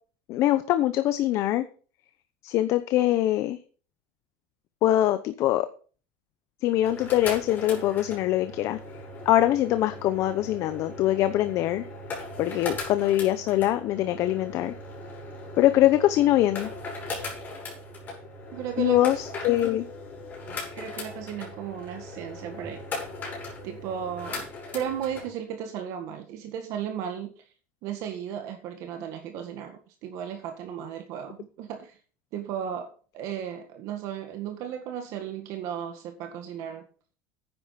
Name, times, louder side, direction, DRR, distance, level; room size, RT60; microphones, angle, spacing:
voice 1, 0.3-1.6 2.4-3.6 4.8-5.7 6.6-8.8 9.3-11.8 12.4-14.7 15.6-16.7 18.8-19.9, left 14 dB, 45° left, 11 dB, 0.8 m, -23 dB
sound 1, 6.7-25.3, left 2 dB, 25° left, 6.1 m, -39 dB
voice 2, 18.5-19.2 20.7-22.8 23.6-24.5 24.7-27.4 27.8-32.0 32.3-36.9, right 9 dB, 50° right, 5 dB, 1.8 m, -35 dB
10.0 x 8.9 x 5.9 m, 0.40 s
supercardioid pair, 150°, 7 cm